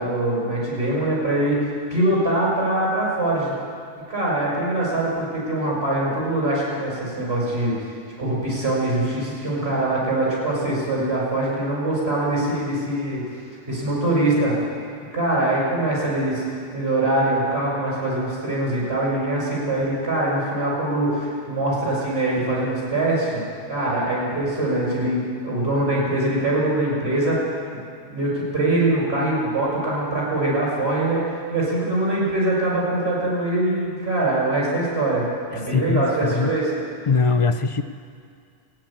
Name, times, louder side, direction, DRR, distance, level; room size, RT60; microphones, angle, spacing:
voice 1, 0.0-3.5 4.1-7.8 8.2-13.2 13.7-14.5 15.1-16.4 16.7-27.5 28.1-31.2 31.5-36.7, right 1 dB, 60° right, -6 dB, 5.8 m, -23 dB
voice 2, 35.5-36.5 37.1-37.8, left 4 dB, 55° left, 8 dB, 0.3 m, -21 dB
16.0 x 9.6 x 8.7 m, 2.3 s
omnidirectional pair, 1.2 m